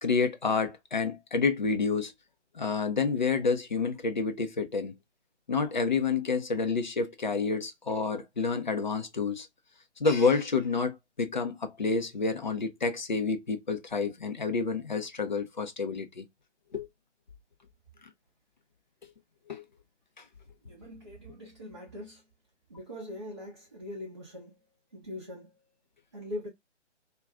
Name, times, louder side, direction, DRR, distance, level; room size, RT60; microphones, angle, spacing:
voice 1, 0.0-2.1 2.6-4.9 5.5-9.5 10.0-16.2 16.7-16.9 19.5-19.6, left 4 dB, 40° left, 0.5 m, -29 dB
voice 2, 20.6-22.2 22.7-24.6 24.9-25.5 26.1-26.5, left 1 dB, 25° right, 0.5 m, -41 dB
2.4 x 2.2 x 3.3 m
figure-of-eight pair, 145°, 36 cm